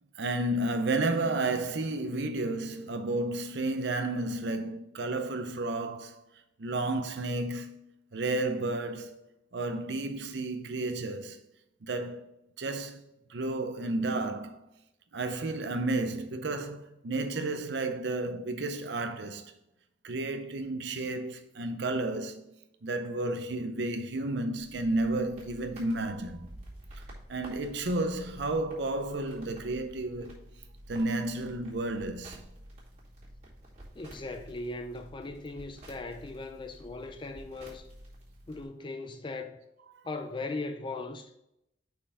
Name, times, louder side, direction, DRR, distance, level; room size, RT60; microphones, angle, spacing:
voice 1, 0.2-6.3 6.6-7.8 8.1-9.2 9.5-11.4 11.8-12.3 12.6-13.0 13.3-14.6 15.1-19.5 20.0-22.5 22.8-26.5 27.3-30.4 30.9-32.4, right 2 dB, 65° right, 0.6 m, -32 dB
sound 1, 24.6-38.6, right 1 dB, 35° right, 2.2 m, -50 dB
voice 2, 33.9-37.9 38.5-39.6 40.0-41.3, left 2 dB, 25° left, 0.4 m, -38 dB
5.5 x 4.6 x 4.7 m
head